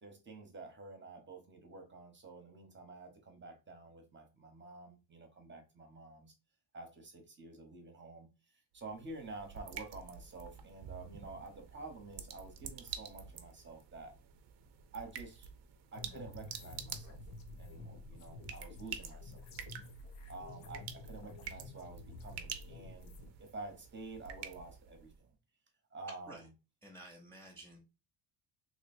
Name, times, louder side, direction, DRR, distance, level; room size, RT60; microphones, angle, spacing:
voice 1, 0.0-6.3 6.7-8.3 8.7-14.1 14.9-15.5 15.9-17.2 17.6-19.4 20.3-23.1 23.4-25.3 25.9-26.5, right 3 dB, 25° right, 1.0 m, -49 dB
sound 1, 8.8-25.2, right 8 dB, 60° right, 0.7 m, -49 dB
sound 2, 15.9-23.3, left 2 dB, 80° left, 0.8 m, -50 dB
voice 2, 26.8-27.8, right 1 dB, 5° left, 0.7 m, -52 dB
3.0 x 2.3 x 4.2 m
cardioid pair, 115°, 48 cm